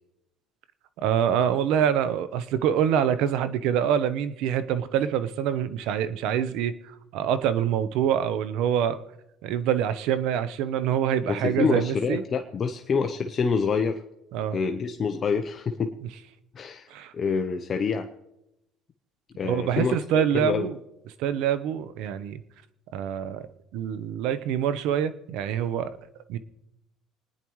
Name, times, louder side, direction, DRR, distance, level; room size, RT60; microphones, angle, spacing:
voice 1, 1.0-9.0 9.4-12.2 14.3-14.6 16.9-17.1 19.4-20.8 21.2-22.4 22.9-23.4 23.7-25.9 26.3-26.4, right 9 dB, 75° right, 13 dB, 0.8 m, -25 dB
voice 2, 11.3-14.0 14.5-16.0 16.5-16.9 17.1-18.1 19.4-19.9 20.3-20.7, left 5 dB, 40° left, 6 dB, 0.8 m, -26 dB
28.0 x 10.0 x 3.1 m, 0.89 s
cardioid pair, 105°, 0 cm